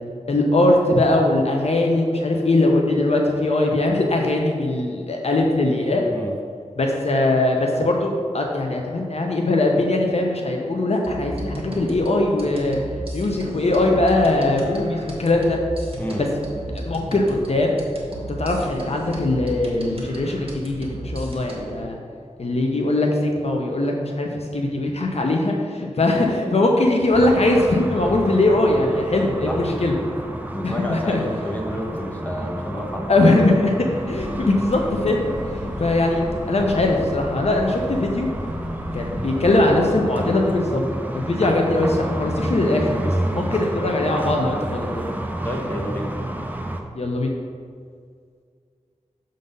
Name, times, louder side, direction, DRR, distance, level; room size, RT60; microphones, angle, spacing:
voice 1, 0.3-6.0 6.8-12.8 13.1-15.6 16.8-17.7 18.4-22.0 22.4-29.9 30.6-31.2 33.1-33.7 34.1-38.3 38.9-40.8 41.1-45.0 47.0-47.3, left 2 dB, 55° left, 1 dB, 0.7 m, -21 dB
sound 1, 11.0-21.8, right 1 dB, 50° right, 1.4 m, -34 dB
sound 2, 27.1-46.8, right 1 dB, 15° right, 0.6 m, -30 dB
voice 2, 30.5-33.4 45.4-46.1, equal, 15° left, -1 dB, 1.0 m, -30 dB
sound 3, 34.1-39.9, left 2 dB, 90° left, 1.0 m, -36 dB
6.6 x 3.9 x 5.3 m, 2.1 s
wide cardioid pair, 85°, 12 cm